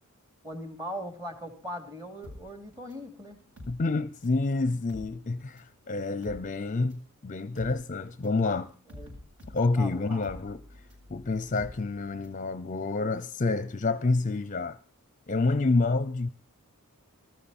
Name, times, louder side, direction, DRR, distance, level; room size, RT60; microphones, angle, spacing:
voice 1, 0.4-3.4 9.0-9.1 9.8-10.2, equal, 15° right, 2.9 m, -39 dB
sound 1, 2.2-4.5 4.7-12.4 12.7-12.8, left 1 dB, 60° right, 7.9 m, -48 dB
voice 2, 3.7-8.7 9.5-10.6 11.1-14.8 15.3-16.3, left 3 dB, 35° left, 0.6 m, -28 dB
19.5 x 14.0 x 4.3 m
head